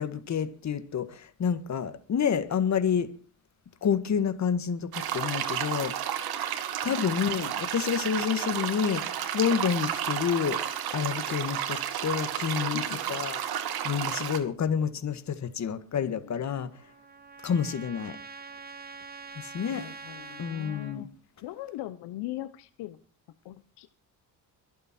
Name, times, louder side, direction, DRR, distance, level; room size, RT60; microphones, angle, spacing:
voice 1, 0.0-3.1 3.8-5.9 6.8-10.6 10.9-12.8 13.1-13.4 13.8-16.7 17.4-18.2 19.4-19.9 20.4-21.1, left 7 dB, 45° left, 1.8 m, -29 dB
sound 1, 4.9-14.4, right 9 dB, 65° right, 2.3 m, -32 dB
voice 2, 12.7-13.2 15.9-16.3 19.7-21.1 21.4-23.0 23.4-24.0, left 15 dB, 85° left, 1.1 m, -40 dB
Trumpet, 16.5-21.0, right 4 dB, 25° right, 1.5 m, -45 dB
24.0 x 8.5 x 4.4 m
cardioid pair, 115°, 40 cm